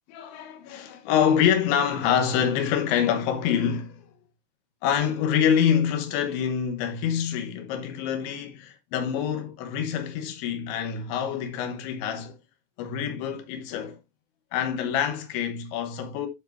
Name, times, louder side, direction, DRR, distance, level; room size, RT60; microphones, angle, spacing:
voice 1, 0.1-4.0 4.8-12.3 12.8-14.0 14.5-16.3, left 8 dB, 85° left, 3.5 m, -26 dB
12.5 x 4.8 x 2.5 m
omnidirectional pair, 5.1 m